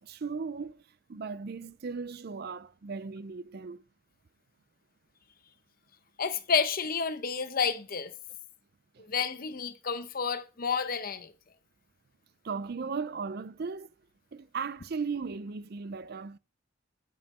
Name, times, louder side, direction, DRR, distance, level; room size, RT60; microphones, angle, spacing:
voice 1, 0.0-0.8 1.1-3.8 8.9-9.0 12.4-13.9 14.3-16.4, right 5 dB, 50° right, 0.5 m, -37 dB
voice 2, 6.2-8.1 9.1-11.3, left 6 dB, 45° left, 0.8 m, -30 dB
9.9 x 5.5 x 4.3 m
head